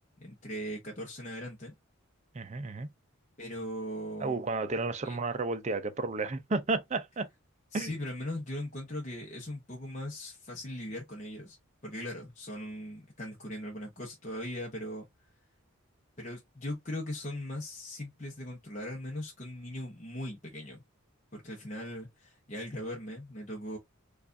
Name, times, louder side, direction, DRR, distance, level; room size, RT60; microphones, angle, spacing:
voice 1, 0.2-1.7 3.4-4.4 5.0-5.2 7.7-11.6 11.8-15.0 16.2-20.8 21.3-23.8, left 1 dB, 35° left, 0.8 m, -39 dB
voice 2, 2.3-2.9 4.2-7.3 7.7-7.9, right 3 dB, 30° right, 0.4 m, -32 dB
4.6 x 2.4 x 2.6 m
head